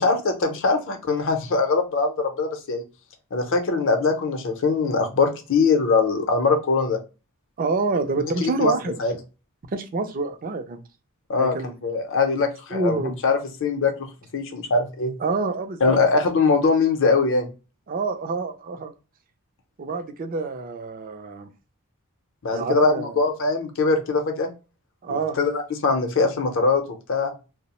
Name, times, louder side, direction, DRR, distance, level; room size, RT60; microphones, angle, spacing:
voice 1, 0.0-2.8 3.3-7.0 8.4-8.7 9.0-9.1 11.3-15.1 15.8-17.5 22.4-24.5 25.1-26.8 27.1-27.3, left 4 dB, 60° left, 5 dB, 0.6 m, -22 dB
voice 2, 7.6-9.0 9.7-10.8 11.3-11.7 12.7-13.2 15.2-16.0 17.9-18.9 19.8-21.5 22.5-23.2 25.0-25.4, right 3 dB, 40° right, 6 dB, 0.4 m, -27 dB
2.7 x 2.0 x 2.9 m, 0.31 s
head